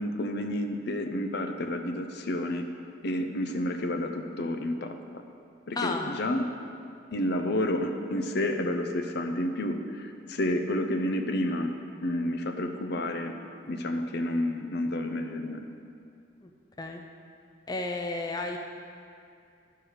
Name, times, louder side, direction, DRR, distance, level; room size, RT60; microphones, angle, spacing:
voice 1, 0.0-2.7 3.0-5.2 5.7-6.5 7.1-11.7 12.0-13.3 13.7-15.6, left 1 dB, 60° left, 6 dB, 0.6 m, -30 dB
voice 2, 5.8-6.1 16.4-16.5 16.8-17.0 17.7-18.6, left 2 dB, 20° left, 3 dB, 0.5 m, -32 dB
11.5 x 4.7 x 6.4 m, 2.4 s
head